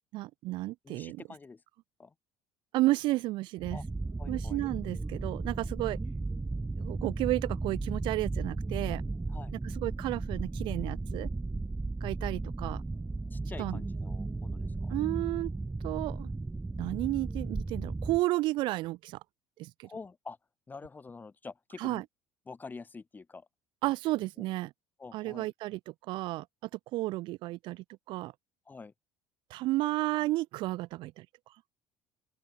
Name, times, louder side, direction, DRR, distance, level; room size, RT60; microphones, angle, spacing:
voice 1, 0.1-1.2 2.7-3.8 4.3-6.0 6.8-9.0 9.8-11.3 12.0-12.8 13.6-13.8 14.9-15.5 15.8-16.3 16.8-19.2 19.6-19.9 21.8-22.0 23.8-24.7 25.1-25.8 26.1-28.3 29.5-31.3, right 18 dB, 70° right, 1.0 m, -32 dB
voice 2, 0.8-1.6 2.0-2.1 3.7-3.8 4.2-4.7 9.3-9.5 13.3-14.9 19.8-20.4 20.7-22.0 22.5-23.5 24.4-24.5 25.0-25.5 28.7-28.9, left 4 dB, 20° left, 2.2 m, -46 dB
sound 1, 3.6-18.2, right 3 dB, 10° right, 0.6 m, -35 dB
open air
supercardioid pair, 105°, 9 cm